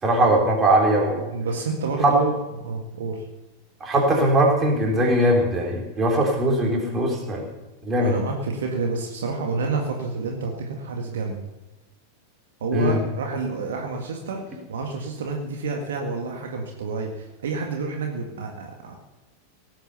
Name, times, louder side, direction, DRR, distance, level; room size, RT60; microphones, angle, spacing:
voice 1, 0.0-1.3 2.0-2.1 3.8-7.5 7.8-8.1 12.7-13.0, right 1 dB, 20° right, 1 dB, 3.9 m, -20 dB
voice 2, 1.3-3.2 8.0-11.4 12.6-19.0, right 3 dB, 60° right, 2 dB, 1.8 m, -29 dB
17.5 x 8.9 x 7.0 m, 1.1 s
figure-of-eight pair, 90°, 0 cm